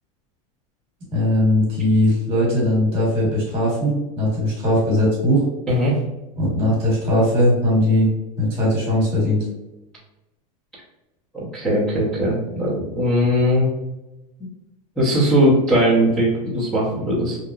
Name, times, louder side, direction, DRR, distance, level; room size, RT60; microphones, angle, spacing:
voice 1, 1.1-5.4 6.4-8.1 8.4-9.4, left 1 dB, 30° right, -5 dB, 1.3 m, -19 dB
voice 2, 5.7-6.0 11.3-13.7 15.0-17.4, equal, 5° left, -12 dB, 0.8 m, -19 dB
2.9 x 2.2 x 2.3 m, 0.99 s
supercardioid pair, 175°, 19 cm